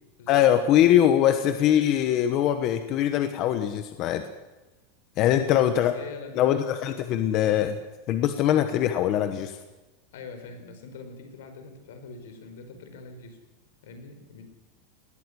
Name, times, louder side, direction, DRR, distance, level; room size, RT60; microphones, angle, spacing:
voice 1, 0.3-4.2 5.2-5.9 6.4-7.8 8.1-9.6, left 11 dB, 30° left, 8 dB, 1.0 m, -22 dB
voice 2, 5.2-6.5 6.9-7.0 10.1-13.4 13.8-14.4, left 4 dB, 75° left, 7 dB, 5.0 m, -43 dB
19.5 x 13.5 x 9.9 m, 1.1 s
supercardioid pair, 175°, 0 cm